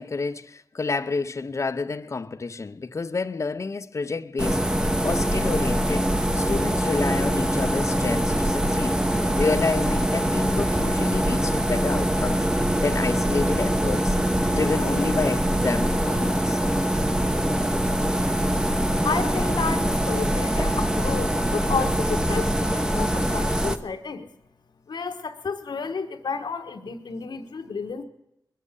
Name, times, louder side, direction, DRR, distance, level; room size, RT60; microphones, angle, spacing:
voice 1, 0.0-9.0 9.4-12.4 12.8-14.2 14.5-16.6, left 4 dB, 45° left, 0.6 m, -29 dB
sound 1, 4.4-23.8, equal, 10° right, 0.8 m, -23 dB
voice 2, 19.0-24.3 24.9-28.0, left 5 dB, 85° left, 1.3 m, -31 dB
21.5 x 7.4 x 8.2 m
wide cardioid pair, 100°, 7 cm